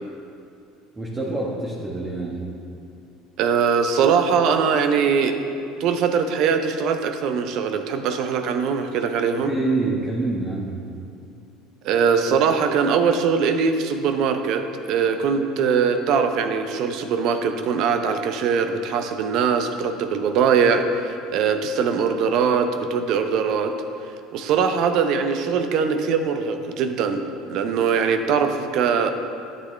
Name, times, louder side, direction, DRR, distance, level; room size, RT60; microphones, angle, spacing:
voice 1, 1.0-2.5 9.4-11.0, right 3 dB, 20° right, -4 dB, 1.3 m, -26 dB
voice 2, 3.4-5.4 5.8-9.5 11.8-23.8 24.3-27.2 27.5-29.1, right 6 dB, 60° right, 7 dB, 0.6 m, -21 dB
11.5 x 6.9 x 3.3 m, 2.5 s
hypercardioid pair, 70°, 0 cm